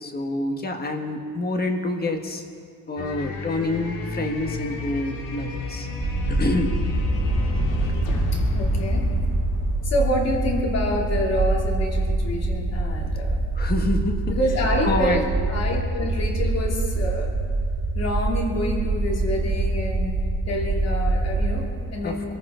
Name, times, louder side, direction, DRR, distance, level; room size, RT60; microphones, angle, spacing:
voice 1, 0.0-2.4 2.9-5.9 6.3-6.8 13.5-14.3 14.8-15.2 22.0-22.4, left 2 dB, 25° left, 4 dB, 1.4 m, -27 dB
sound 1, 3.0-10.8, left 3 dB, 65° left, 2.1 m, -30 dB
sound 2, 6.0-21.7, right 2 dB, 25° right, 1.3 m, -25 dB
voice 2, 8.3-9.1 9.8-13.4 14.3-17.3 17.9-22.4, left 1 dB, 45° left, -1 dB, 2.8 m, -27 dB
25.5 x 14.0 x 3.7 m, 2.2 s
cardioid pair, 165°, 35 cm